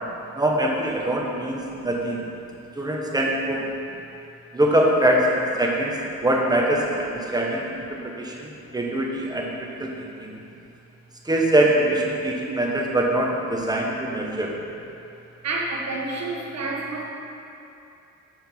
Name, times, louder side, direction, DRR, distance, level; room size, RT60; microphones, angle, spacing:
voice 1, 0.4-2.2 2.8-3.6 4.5-9.5 9.8-9.9 10.2-10.3 11.2-14.5, right 1 dB, 15° right, -2 dB, 1.3 m, -23 dB
voice 2, 15.4-17.1, right 2 dB, 60° right, -1 dB, 1.4 m, -31 dB
7.8 x 6.4 x 4.6 m, 2.8 s
cardioid pair, 90°, 30 cm